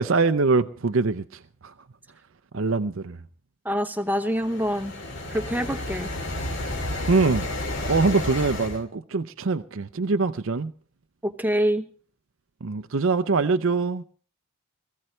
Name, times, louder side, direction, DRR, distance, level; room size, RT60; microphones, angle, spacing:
voice 1, 0.0-1.7 2.5-3.2 7.1-7.5 7.9-10.7 12.6-14.0, right 4 dB, 60° right, 0.6 m, -23 dB
voice 2, 3.6-4.9 5.3-6.1 11.2-11.8, equal, 10° right, 0.9 m, -25 dB
sound 1, 4.1-8.8, left 1 dB, 55° left, 2.4 m, -31 dB
20.0 x 15.0 x 3.2 m
head